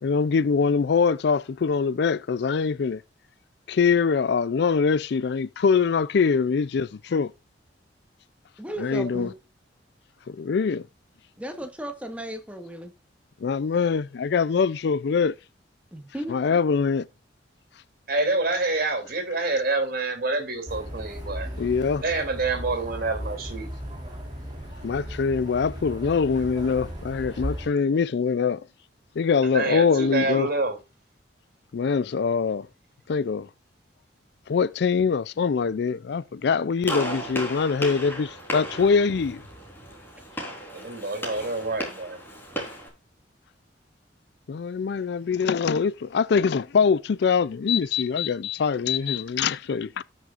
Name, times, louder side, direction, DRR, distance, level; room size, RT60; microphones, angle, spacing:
voice 1, 0.0-3.0 3.7-7.3 8.8-9.3 10.3-10.9 13.4-15.3 16.3-17.1 21.6-22.0 24.8-28.7 29.2-30.5 31.7-32.7 33.1-33.5 34.5-39.4 44.5-50.0, left 5 dB, 60° left, 0.4 m, -23 dB
voice 2, 8.6-9.3 11.4-12.9 15.9-16.4, right 1 dB, 5° right, 1.7 m, -35 dB
voice 3, 18.1-21.5 22.0-23.7 29.5-30.8 40.7-42.2, right 3 dB, 50° right, 3.1 m, -27 dB
sound 1, 20.7-27.7, equal, 25° right, 4.6 m, -36 dB
Gunshot gunfire, 36.8-42.9, equal, 10° left, 3.8 m, -35 dB
18.0 x 6.3 x 2.5 m
head